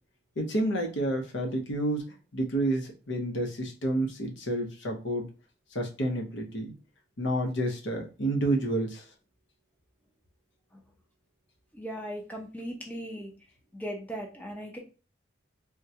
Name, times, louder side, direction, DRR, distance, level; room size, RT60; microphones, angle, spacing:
voice 1, 0.4-2.0 2.3-5.3 5.7-6.7 7.2-9.1, right 1 dB, 75° left, 2 dB, 0.8 m, -29 dB
voice 2, 11.7-13.3 13.7-14.8, equal, 10° left, 0 dB, 0.6 m, -38 dB
3.6 x 2.2 x 2.8 m, 0.34 s
head